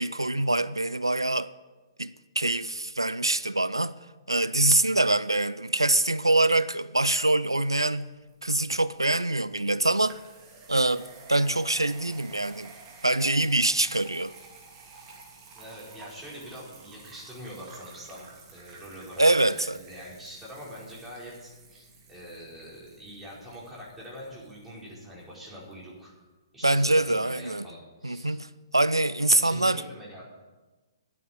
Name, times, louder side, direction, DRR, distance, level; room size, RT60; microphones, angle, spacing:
voice 1, 0.0-1.5 2.0-3.9 4.3-8.1 8.4-10.2 10.7-12.7 13.0-14.3 19.2-19.8 26.6-27.6 28.0-29.8, right 2 dB, 90° right, 0.4 m, -24 dB
sound 1, 7.8-25.8, right 4 dB, 25° right, 2.6 m, -51 dB
voice 2, 15.5-26.1 26.5-28.4 29.3-30.3, equal, 5° right, 4.8 m, -44 dB
10.5 x 8.4 x 8.8 m
figure-of-eight pair, 125°, 2 cm